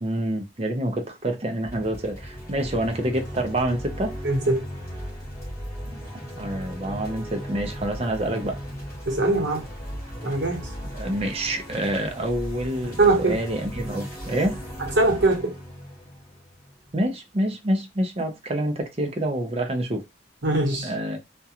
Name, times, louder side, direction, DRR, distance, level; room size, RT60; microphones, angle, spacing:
voice 1, 0.0-4.2 5.9-8.6 10.9-14.6 16.9-20.0 20.8-21.2, right 1 dB, 30° right, 0.5 m, -27 dB
sound 1, 1.6-17.0, equal, 15° left, 1.1 m, -37 dB
voice 2, 4.2-4.6 9.1-9.7 10.2-10.7 13.0-13.4 15.0-15.6 20.4-20.9, right 2 dB, 65° right, 0.9 m, -21 dB
2.4 x 2.2 x 2.8 m
head